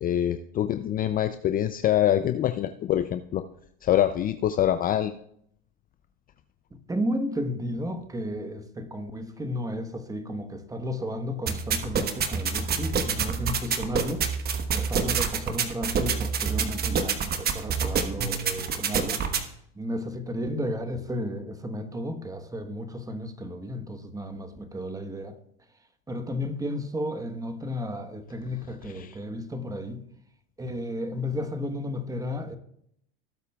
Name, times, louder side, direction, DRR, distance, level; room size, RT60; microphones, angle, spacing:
voice 1, 0.0-3.4 3.8-5.1 29.0-29.1, left 11 dB, 30° left, 0.4 m, -25 dB
voice 2, 6.9-14.3 14.7-19.2 19.7-25.4 26.1-30.0 30.6-32.6, equal, 10° right, 1.2 m, -33 dB
sound 1, 11.5-19.4, right 6 dB, 30° right, 1.2 m, -27 dB
18.0 x 8.2 x 2.3 m
hypercardioid pair, 100°, 30 cm